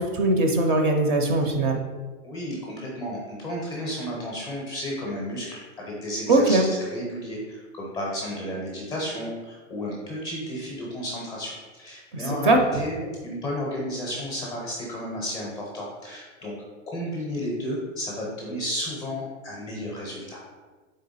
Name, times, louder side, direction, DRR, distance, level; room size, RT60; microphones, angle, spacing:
voice 1, 0.0-1.8 6.3-6.7 12.1-12.8, right 2 dB, 40° right, 3 dB, 0.5 m, -21 dB
voice 2, 2.2-13.0 13.2-16.5 16.9-20.4, equal, 10° left, -4 dB, 0.5 m, -32 dB
3.9 x 3.3 x 4.0 m, 1.3 s
hypercardioid pair, 160°, 41 cm